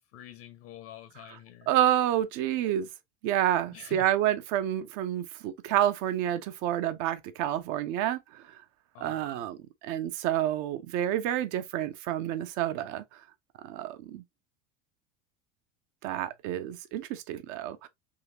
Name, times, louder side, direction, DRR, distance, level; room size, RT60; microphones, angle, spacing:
voice 1, 0.0-1.7 3.7-4.2 8.9-9.5, left 11 dB, 50° left, 0.8 m, -47 dB
voice 2, 1.7-2.9 3.2-8.4 9.0-13.0 13.6-14.2 16.0-17.9, right 12 dB, 45° right, 0.6 m, -29 dB
3.8 x 2.8 x 2.7 m
figure-of-eight pair, 70°, 41 cm